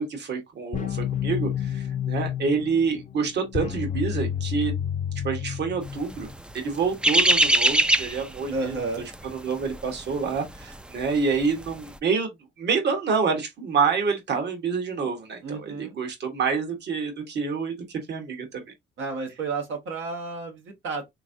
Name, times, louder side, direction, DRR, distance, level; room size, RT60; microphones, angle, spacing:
voice 1, 0.0-4.7 5.2-6.3 6.5-8.8 9.2-12.3 12.6-17.7 18.1-18.6, right 5 dB, 65° right, 1.3 m, -27 dB
sound 1, 0.7-6.3, left 9 dB, 40° left, 0.6 m, -30 dB
sound 2, 6.1-11.2 11.4-11.7, right 1 dB, 5° right, 0.3 m, -22 dB
voice 2, 8.5-9.0 15.4-16.0 19.0-21.1, right 3 dB, 85° right, 1.2 m, -31 dB
3.6 x 3.0 x 2.6 m
cardioid pair, 100°, 19 cm